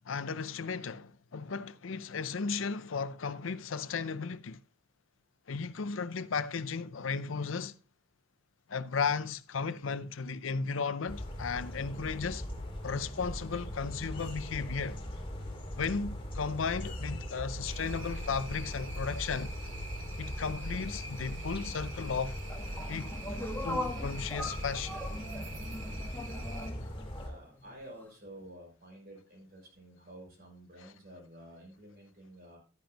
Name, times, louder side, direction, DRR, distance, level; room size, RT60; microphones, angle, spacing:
voice 1, 0.1-4.6 5.5-7.7 8.7-12.4 12.8-15.0 15.8-19.5 20.2-22.4 22.9-23.4 23.6-25.0 26.8-26.9, left 5 dB, 80° left, 0.6 m, -35 dB
sound 1, 11.1-27.3, equal, 30° left, 2.1 m, -40 dB
sound 2, 17.6-26.7, right 1 dB, 75° right, 2.0 m, -44 dB
sound 3, 22.5-28.0, left 1 dB, 10° left, 1.3 m, -40 dB
voice 2, 27.1-32.6, right 1 dB, 50° right, 6.1 m, -51 dB
12.5 x 10.5 x 2.9 m
head